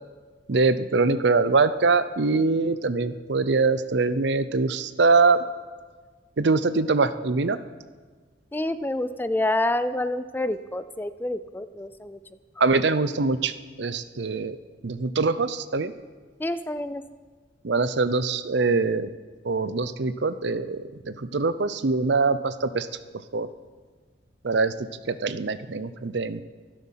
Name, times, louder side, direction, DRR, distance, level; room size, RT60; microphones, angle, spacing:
voice 1, 0.5-5.4 6.4-7.6 12.6-14.6 14.8-15.9 17.6-19.1 19.4-22.9 23.3-23.5 24.4-26.4, right 4 dB, 65° right, 13 dB, 0.6 m, -23 dB
voice 2, 8.5-12.2 16.4-17.0, left 1 dB, 10° left, 13 dB, 0.4 m, -28 dB
23.5 x 7.9 x 5.7 m, 1.5 s
head